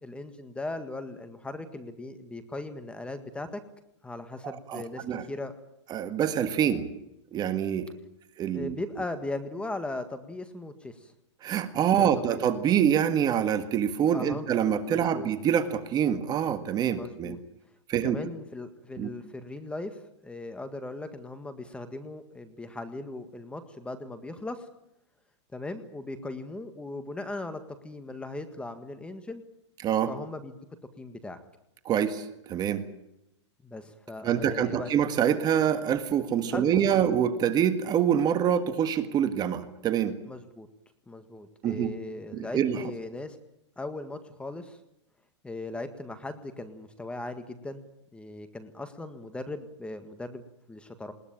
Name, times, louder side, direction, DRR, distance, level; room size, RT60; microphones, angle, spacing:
voice 1, 0.0-3.6 4.0-5.5 8.5-11.1 12.0-12.5 14.1-14.5 14.9-15.3 16.9-17.4 18.0-24.7 25.5-29.4 30.1-30.6 31.0-31.4 33.6-34.9 36.5-37.2 40.3-40.7 41.1-43.4 43.8-44.8 45.4-47.8 48.1-51.1, left 2 dB, 5° left, 10 dB, 1.7 m, -38 dB
voice 2, 4.4-5.2 5.9-6.9 7.3-7.9 8.4-8.7 11.4-17.4 17.9-18.2 19.0-19.1 29.8-30.1 31.8-32.8 34.2-40.2 41.6-41.9 42.3-42.9, right 9 dB, 25° right, 10 dB, 1.7 m, -26 dB
20.5 x 19.5 x 8.9 m, 0.83 s
hypercardioid pair, 140°, 15 cm